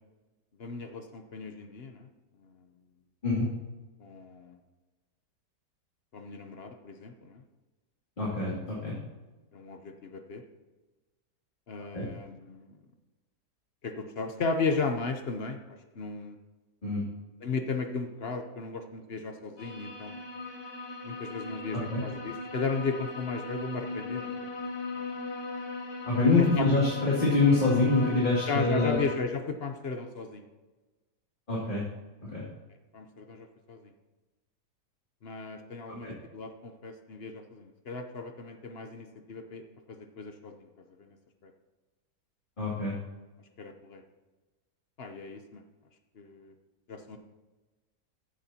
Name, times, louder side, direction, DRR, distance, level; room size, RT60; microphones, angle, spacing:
voice 1, 0.6-2.1 4.0-4.6 6.1-7.4 8.4-8.6 9.5-10.4 11.7-12.7 13.8-16.4 17.4-20.2 21.0-24.5 24.9-25.2 26.4-26.7 28.5-30.4 32.9-33.8 35.2-40.7 41.0-41.1 41.4-41.5 43.6-44.0 45.0-45.6 46.2-46.5 46.9-47.2, left 4 dB, 50° left, 6 dB, 0.8 m, -35 dB
voice 2, 8.2-8.9 11.9-12.1 16.8-17.0 21.7-22.0 26.0-29.0 31.5-31.8 32.3-32.4 36.0-36.1 42.6-42.9, left 3 dB, 30° left, -7 dB, 2.6 m, -25 dB
sound 1, 19.6-29.2, left 2 dB, 80° left, 1.7 m, -38 dB
15.0 x 8.1 x 2.9 m, 1.2 s
omnidirectional pair, 1.9 m